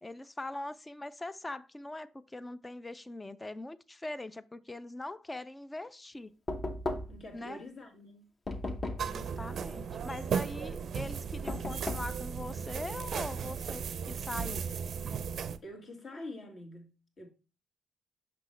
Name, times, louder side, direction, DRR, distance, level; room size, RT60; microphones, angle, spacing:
voice 1, 0.0-6.4 7.3-7.6 9.0-14.7, left 2 dB, 15° left, 0.4 m, -42 dB
Knock, 6.5-7.3 8.5-9.2 11.5-12.2, left 2 dB, 35° left, 0.9 m, -36 dB
voice 2, 7.1-8.3 15.6-17.3, left 1 dB, 50° left, 1.8 m, -46 dB
sound 1, 9.0-15.6, right 7 dB, 60° right, 0.5 m, -36 dB
6.0 x 5.7 x 3.2 m
cardioid pair, 90°, 0 cm